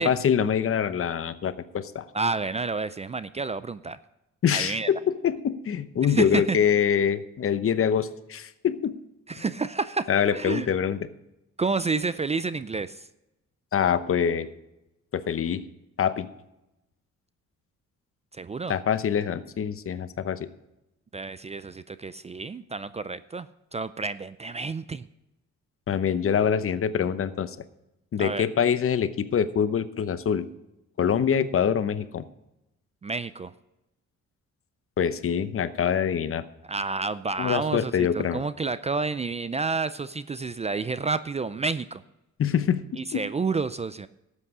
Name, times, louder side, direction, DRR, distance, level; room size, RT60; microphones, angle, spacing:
voice 1, 0.0-2.1 4.4-9.0 10.1-11.0 13.7-14.5 15.1-15.6 16.0-16.3 18.7-20.5 25.9-27.6 28.1-30.5 31.0-32.2 35.0-36.4 37.4-38.4 42.4-43.3, left 8 dB, 45° left, 13 dB, 0.9 m, -25 dB
voice 2, 2.1-4.0 4.5-4.9 6.1-6.6 9.3-10.7 11.6-13.1 18.3-18.7 21.1-25.1 28.2-28.4 33.0-33.5 36.6-42.0 43.0-44.1, right 4 dB, 20° right, 15 dB, 0.4 m, -30 dB
12.5 x 8.4 x 4.8 m, 0.90 s
cardioid pair, 90°, 30 cm